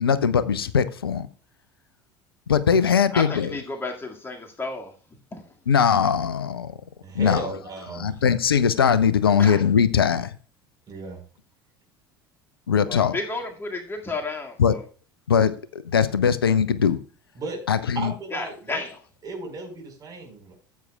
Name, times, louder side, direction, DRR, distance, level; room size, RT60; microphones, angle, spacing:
voice 1, 0.0-1.3 2.5-3.6 5.7-6.7 7.1-7.4 8.0-10.3 12.7-13.2 14.6-14.8 15.3-17.0 17.7-18.1, left 7 dB, 80° left, 0.6 m, -20 dB
voice 2, 3.5-4.9 9.4-9.6 12.9-14.5 18.3-18.8, left 3 dB, 20° left, 2.1 m, -31 dB
voice 3, 7.0-8.1 10.9-11.2 17.3-17.6 17.9-18.8 19.2-20.5, right 3 dB, 30° right, 4.9 m, -35 dB
15.0 x 8.3 x 2.4 m
figure-of-eight pair, 70°, 12 cm